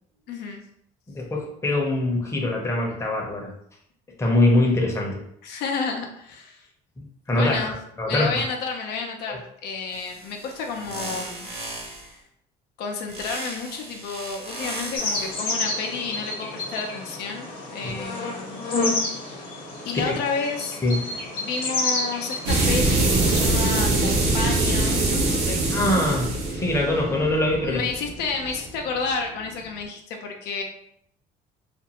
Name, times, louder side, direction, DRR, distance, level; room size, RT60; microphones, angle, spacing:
voice 1, 0.3-0.6 5.4-6.6 7.3-7.8 8.1-11.5 12.8-18.6 19.9-20.8 21.1-25.7 27.6-30.6, left 4 dB, 80° left, 2 dB, 0.5 m, -31 dB
voice 2, 1.1-3.5 4.2-5.2 7.3-8.3 9.3-9.4 17.8-18.1 19.9-20.1 20.8-21.1 25.7-27.8, left 1 dB, 15° left, -1 dB, 0.6 m, -23 dB
sound 1, 9.9-12.2 13.1-15.4, right 2 dB, 35° right, 0.8 m, -37 dB
sound 2, 14.9-23.6, left 2 dB, 60° left, 0.9 m, -30 dB
sound 3, 22.4-28.9, right 2 dB, 85° right, 0.8 m, -23 dB
2.5 x 2.3 x 2.8 m, 0.71 s
cardioid pair, 110°, 17 cm